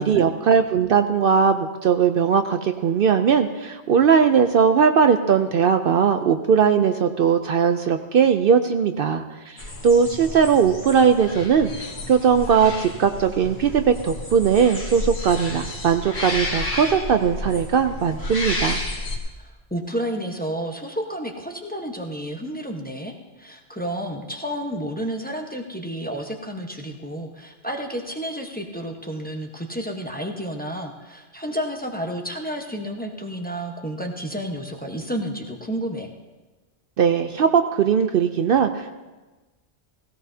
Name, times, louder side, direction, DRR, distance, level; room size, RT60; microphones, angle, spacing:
voice 1, 0.0-18.8 37.0-38.9, right 7 dB, 65° right, 8 dB, 0.7 m, -19 dB
sound 1, 9.6-19.2, left 2 dB, 75° left, 2.0 m, -31 dB
voice 2, 19.4-36.1, equal, 10° left, 2 dB, 1.0 m, -31 dB
17.0 x 17.0 x 2.8 m, 1.2 s
omnidirectional pair, 1.1 m